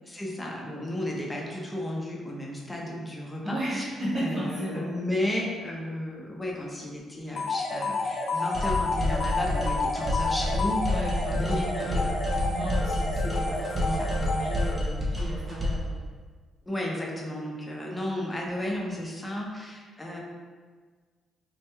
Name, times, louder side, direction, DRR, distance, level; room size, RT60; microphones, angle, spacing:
voice 1, 0.0-3.9 4.1-12.1 13.8-14.1 16.7-20.2, left 1 dB, 15° left, -2 dB, 0.7 m, -33 dB
voice 2, 3.4-5.0 10.9-16.0, right 1 dB, 50° right, -10 dB, 1.3 m, -34 dB
sound 1, 7.4-15.1, left 3 dB, 75° left, 0.5 m, -30 dB
sound 2, 8.5-15.9, left 1 dB, 25° right, 0.7 m, -29 dB
3.0 x 2.2 x 3.3 m, 1.5 s
cardioid pair, 90°, 0 cm